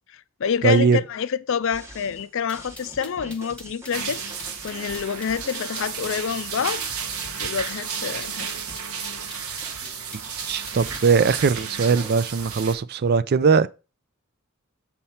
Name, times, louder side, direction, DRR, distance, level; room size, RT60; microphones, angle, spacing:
voice 1, 0.1-6.8 7.4-8.5, left 7 dB, 60° left, 0.5 m, -27 dB
voice 2, 0.6-1.0 10.1-10.2 10.5-13.7, right 5 dB, 45° right, 0.4 m, -20 dB
sound 1, 1.7-12.1, right 1 dB, 15° right, 1.0 m, -45 dB
sound 2, 2.5-11.1, left 2 dB, 5° left, 1.3 m, -44 dB
sound 3, 3.9-12.7, right 7 dB, 90° right, 1.1 m, -33 dB
6.9 x 4.4 x 5.7 m
head